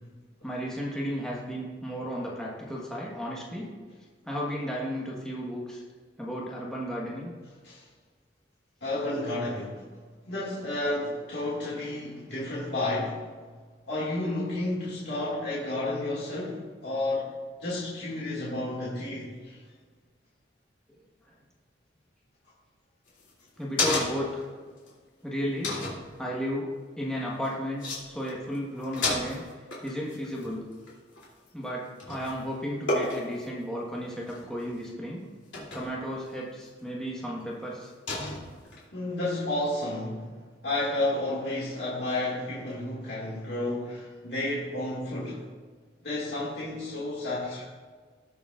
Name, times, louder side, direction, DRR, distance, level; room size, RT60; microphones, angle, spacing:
voice 1, 0.4-3.7 4.2-5.8 6.2-7.3 23.6-24.5 25.2-25.8 26.2-26.7 27.0-29.4 29.8-30.6 31.5-35.2 35.7-37.9, equal, 5° left, -5 dB, 1.3 m, -34 dB
voice 2, 8.8-9.9 10.3-13.3 13.9-17.3 17.6-19.6 38.9-40.3 40.6-45.4 46.0-47.6, left 2 dB, 65° left, -7 dB, 2.1 m, -31 dB
sound 1, 23.1-24.4 24.9-25.0 25.6-26.0 27.4-27.5 27.8-28.0 28.3-28.6 28.8-31.7 32.0-32.4 32.9-33.4 34.2-34.7 35.5-36.0 36.6-36.7 38.1-38.8, left 2 dB, 85° left, 2.9 m, -31 dB
18.0 x 6.9 x 2.5 m, 1.6 s
head